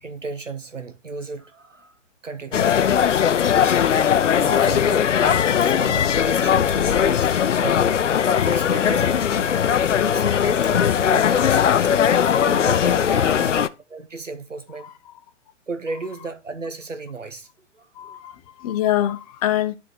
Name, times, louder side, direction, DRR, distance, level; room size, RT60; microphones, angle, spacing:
voice 1, 0.0-3.4 4.3-8.0 8.4-12.0 12.4-13.6 13.9-14.9 15.7-17.5 17.7-18.3, right 3 dB, 90° right, 1.0 m, -35 dB
sound 1, 2.5-13.7, left 8 dB, 75° left, 0.6 m, -19 dB
voice 2, 13.1-13.5 18.0-19.7, left 12 dB, 30° left, 0.7 m, -25 dB
10.5 x 3.7 x 4.5 m
figure-of-eight pair, 120°, 36 cm